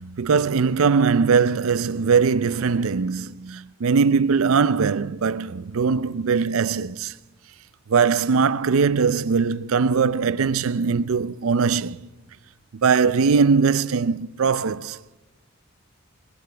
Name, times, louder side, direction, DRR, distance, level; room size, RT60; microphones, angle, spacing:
voice 1, 0.0-7.2 7.9-12.1 12.7-15.0, right 5 dB, 70° right, 0.5 m, -21 dB
sound 1, 2.5-3.0, right 1 dB, 30° right, 4.1 m, -51 dB
26.5 x 15.0 x 3.4 m
head